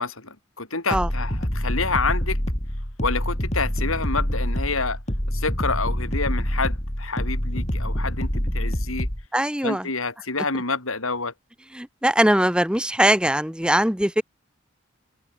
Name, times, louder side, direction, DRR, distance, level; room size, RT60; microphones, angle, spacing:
voice 1, 0.0-2.4 3.0-5.0 5.3-9.1 9.6-11.3, left 4 dB, 85° left, 6.6 m, -28 dB
sound 1, 0.9-9.2, equal, 35° left, 4.5 m, -26 dB
voice 2, 9.3-9.9 11.7-14.2, right 1 dB, 5° right, 1.2 m, -21 dB
open air
head